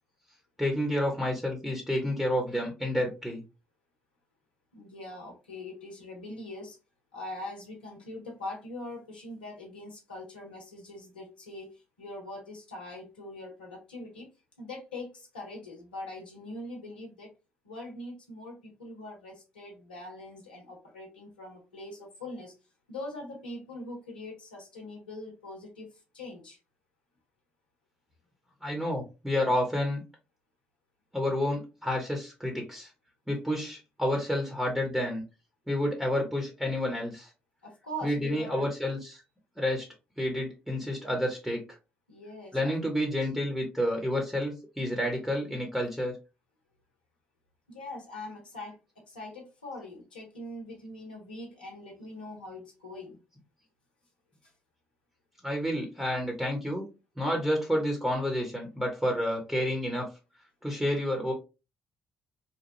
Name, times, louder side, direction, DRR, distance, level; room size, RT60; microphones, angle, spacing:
voice 1, 0.6-3.4 28.6-30.0 31.1-32.9 33.3-35.2 35.7-37.3 38.0-39.2 39.6-39.9 40.2-41.6 42.5-46.1 55.4-56.8 57.2-60.1 60.6-61.3, left 1 dB, 5° right, 1.0 m, -29 dB
voice 2, 4.7-6.8 7.1-14.3 14.6-17.3 17.6-22.5 22.9-25.9 26.1-26.6 37.6-38.7 42.1-42.7 47.7-48.8 49.1-53.2, left 1 dB, 90° left, 0.8 m, -42 dB
3.1 x 2.2 x 2.6 m
hypercardioid pair, 45°, 5 cm